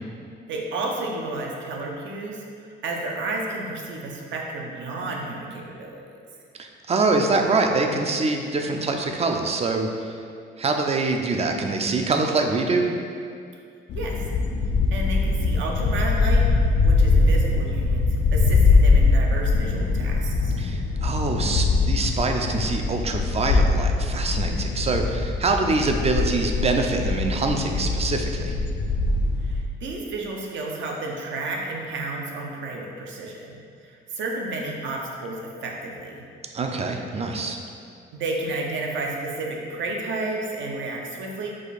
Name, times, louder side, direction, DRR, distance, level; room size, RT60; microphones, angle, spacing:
voice 1, 0.5-6.0 13.9-14.2 14.9-20.6 29.4-33.6 33.8-36.2 38.1-41.5, right 2 dB, 70° right, 0 dB, 0.7 m, -32 dB
voice 2, 6.6-10.1 10.6-12.9 20.6-28.6 36.5-37.6, right 3 dB, 30° right, 3 dB, 0.4 m, -24 dB
sound 1, 13.9-29.6, left 3 dB, 60° left, 0.4 m, -22 dB
4.9 x 2.3 x 4.1 m, 2.3 s
cardioid pair, 90°, 20 cm